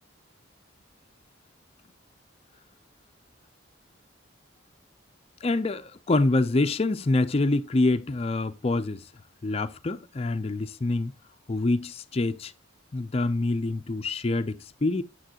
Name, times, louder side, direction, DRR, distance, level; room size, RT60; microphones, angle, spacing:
voice 1, 5.4-9.0 9.4-11.1 11.5-12.5 12.9-15.0, left 2 dB, 30° left, 0.4 m, -26 dB
9.0 x 7.0 x 2.8 m
head